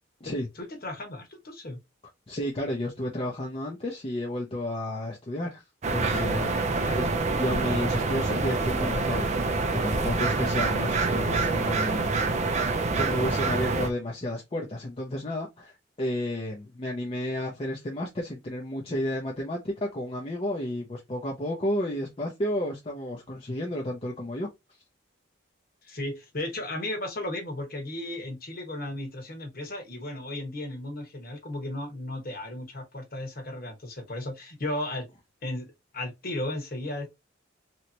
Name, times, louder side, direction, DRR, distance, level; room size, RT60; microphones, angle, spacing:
voice 1, 0.8-1.8 6.7-7.0 25.8-35.1 35.4-37.1, left 1 dB, 50° left, 1.2 m, -35 dB
voice 2, 2.3-5.6 5.9-7.1 7.4-9.5 9.8-12.1 12.6-24.5, left 1 dB, 30° left, 0.6 m, -32 dB
sound 1, 5.8-13.9, right 3 dB, 35° right, 0.4 m, -26 dB
3.2 x 2.9 x 2.8 m
head